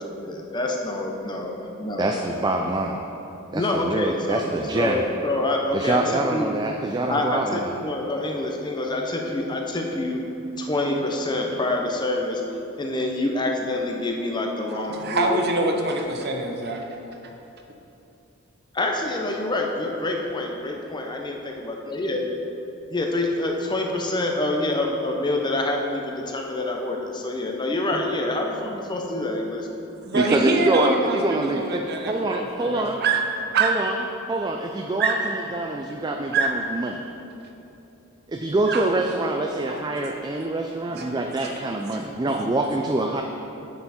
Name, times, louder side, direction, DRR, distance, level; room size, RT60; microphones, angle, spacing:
voice 1, 0.0-2.2 3.5-6.5 7.1-10.2 10.6-12.4 12.8-15.4 18.7-22.2 22.9-29.7, left 2 dB, 20° left, 1 dB, 0.8 m, -26 dB
voice 2, 2.0-3.0 3.5-5.0 5.7-7.7 30.1-33.0 33.6-34.0 34.3-37.0 38.3-43.2, right 2 dB, 20° right, 3 dB, 0.3 m, -25 dB
voice 3, 14.7-16.8 30.0-33.8 35.0-35.2 36.3-36.5 38.7-38.9 39.6-39.8 40.9-41.1 41.4-41.5 42.2-42.5 43.0-43.2, right 3 dB, 50° right, 2 dB, 0.9 m, -25 dB
9.5 x 6.8 x 4.2 m, 2.9 s
head